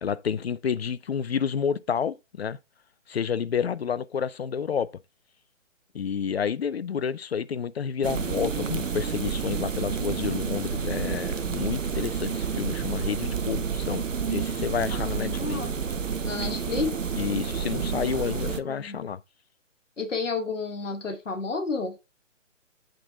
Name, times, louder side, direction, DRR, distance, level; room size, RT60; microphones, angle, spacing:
voice 1, 0.0-2.6 3.1-4.9 5.9-14.0 14.3-15.6 17.2-19.2, left 7 dB, 55° left, 0.5 m, -29 dB
sound 1, 8.0-18.6, right 6 dB, 80° right, 0.7 m, -30 dB
voice 2, 14.9-15.7 16.2-17.0 18.1-19.0 20.0-22.0, left 4 dB, 75° left, 1.2 m, -31 dB
7.7 x 4.3 x 3.4 m
figure-of-eight pair, 135°, 38 cm